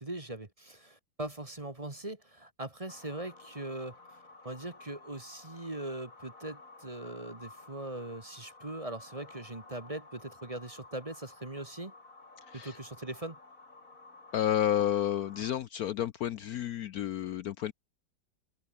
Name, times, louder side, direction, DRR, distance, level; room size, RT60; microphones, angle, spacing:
voice 1, 0.0-4.2 4.4-11.9 12.5-13.4, right 1 dB, 20° right, 1.6 m, -41 dB
sound 1, 2.9-15.5, left 3 dB, 45° left, 4.3 m, -53 dB
voice 2, 12.5-12.8 14.3-17.7, left 11 dB, 65° left, 1.0 m, -31 dB
omnidirectional pair, 1.9 m